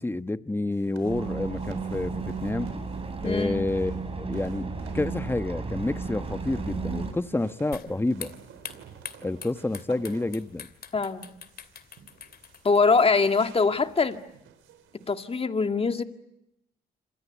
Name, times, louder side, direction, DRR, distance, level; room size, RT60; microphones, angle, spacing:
voice 1, 0.0-2.7 3.2-8.3 9.2-10.7, left 2 dB, 10° left, 1.2 m, -29 dB
sound 1, 0.7-15.4, right 8 dB, 85° right, 4.0 m, -52 dB
sound 2, 1.0-7.1, right 4 dB, 30° right, 5.8 m, -33 dB
voice 2, 3.2-3.7 10.9-11.3 12.6-14.2 15.1-16.0, left 4 dB, 30° left, 2.2 m, -23 dB
sound 3, 7.7-14.3, left 7 dB, 50° left, 2.6 m, -45 dB
27.5 x 26.0 x 8.2 m
cardioid pair, 90°, 20 cm